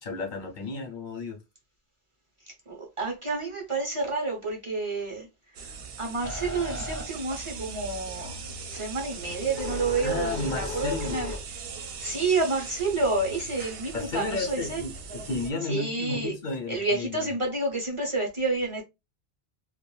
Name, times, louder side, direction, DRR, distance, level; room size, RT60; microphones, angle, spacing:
voice 1, 0.0-1.4 10.0-11.2 13.9-17.3, left 3 dB, 55° left, 0.7 m, -33 dB
voice 2, 2.4-5.3 5.6-8.4 8.7-11.3 12.0-14.8 15.7-16.3 16.7-18.8, right 3 dB, 35° right, 0.6 m, -29 dB
sound 1, 5.5-15.5, right 5 dB, 70° right, 0.8 m, -40 dB
sound 2, 6.2-8.0 8.5-11.4, left 2 dB, 30° left, 0.3 m, -36 dB
2.5 x 2.1 x 3.0 m
omnidirectional pair, 1.0 m